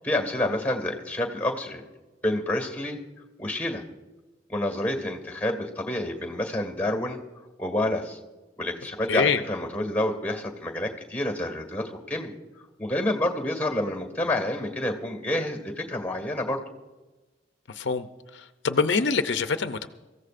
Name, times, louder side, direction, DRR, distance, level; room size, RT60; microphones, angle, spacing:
voice 1, 0.0-1.8 2.2-3.0 3.4-3.8 4.5-7.2 7.6-8.2 8.6-12.3 12.8-16.6, left 1 dB, 5° left, 4 dB, 1.8 m, -28 dB
voice 2, 9.1-9.4 17.7-18.1 18.3-19.9, left 5 dB, 75° left, 9 dB, 0.6 m, -25 dB
24.5 x 15.0 x 2.5 m, 1.1 s
head